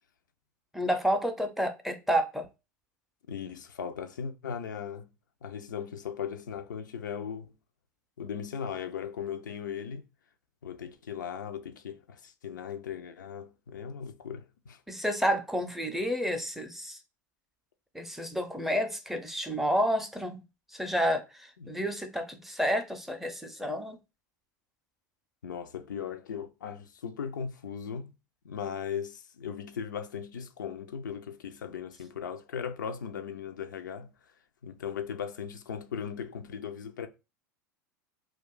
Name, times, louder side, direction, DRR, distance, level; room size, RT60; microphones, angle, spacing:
voice 1, 0.7-2.5 14.9-17.0 17.9-20.4 20.7-24.0, equal, 5° right, 0.5 m, -30 dB
voice 2, 3.3-5.1 5.4-7.5 8.2-10.0 10.6-14.8 21.6-21.7 25.4-28.1 28.4-34.1 34.6-37.1, left 7 dB, 85° left, 0.4 m, -38 dB
2.4 x 2.3 x 3.6 m
hypercardioid pair, 95°, 10 cm